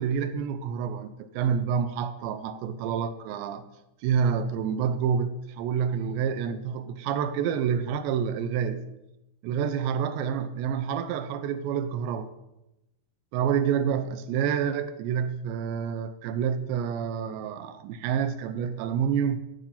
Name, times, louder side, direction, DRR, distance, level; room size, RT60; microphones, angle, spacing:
voice 1, 0.0-3.7 4.0-8.8 9.4-12.3 13.3-19.4, right 7 dB, 80° right, 3.0 m, -28 dB
15.0 x 9.7 x 5.5 m
omnidirectional pair, 5.2 m